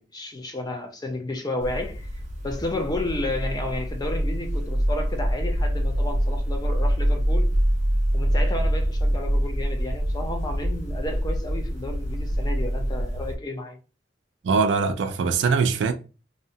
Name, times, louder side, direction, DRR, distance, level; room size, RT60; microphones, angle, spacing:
voice 1, 0.0-2.1 2.4-7.5 8.1-13.8, left 2 dB, 20° left, 0.5 m, -32 dB
sound 1, 1.6-13.4, equal, 45° right, 0.7 m, -25 dB
voice 2, 14.4-15.9, right 5 dB, 75° right, 0.4 m, -22 dB
2.7 x 2.1 x 2.7 m
head